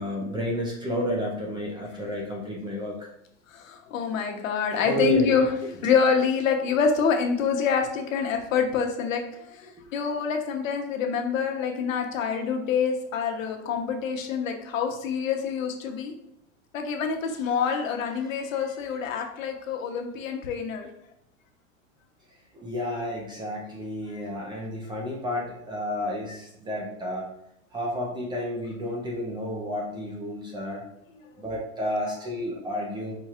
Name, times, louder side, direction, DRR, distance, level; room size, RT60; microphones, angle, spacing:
voice 1, 0.0-3.1 4.8-5.4 18.2-18.7 22.5-27.3 27.7-30.8 31.4-33.1, equal, 10° right, -1 dB, 0.5 m, -31 dB
voice 2, 3.5-5.5 5.8-16.1 16.7-20.9, left 6 dB, 80° left, 3 dB, 1.1 m, -26 dB
4.7 x 2.3 x 4.3 m, 0.77 s
supercardioid pair, 145°, 39 cm